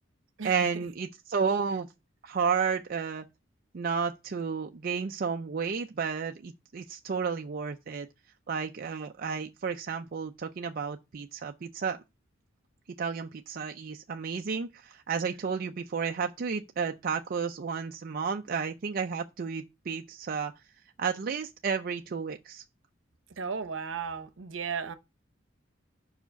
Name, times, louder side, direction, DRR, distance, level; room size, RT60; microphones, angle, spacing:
voice 1, 0.4-1.9 2.2-3.2 3.7-8.1 8.5-12.0 13.0-20.5 21.0-22.6, right 6 dB, 50° right, 0.4 m, -32 dB
voice 2, 23.4-24.9, right 6 dB, 75° right, 0.8 m, -35 dB
5.6 x 4.8 x 5.6 m
head